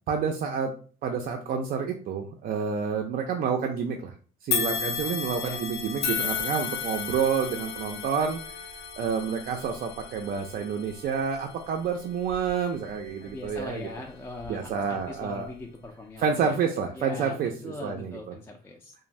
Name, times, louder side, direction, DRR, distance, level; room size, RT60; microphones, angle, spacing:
voice 1, 0.1-0.7 1.0-4.1 4.4-8.4 9.0-13.9 14.5-15.5 16.2-18.3, right 6 dB, 55° right, 3 dB, 0.4 m, -29 dB
sound 1, 4.5-13.8 14.3-14.5 15.5-15.6, left 7 dB, 85° left, 0.5 m, -34 dB
voice 2, 13.2-16.6 16.9-18.9, left 2 dB, 15° left, 1 dB, 0.3 m, -41 dB
2.5 x 2.0 x 3.1 m, 0.41 s
cardioid pair, 110°, 17 cm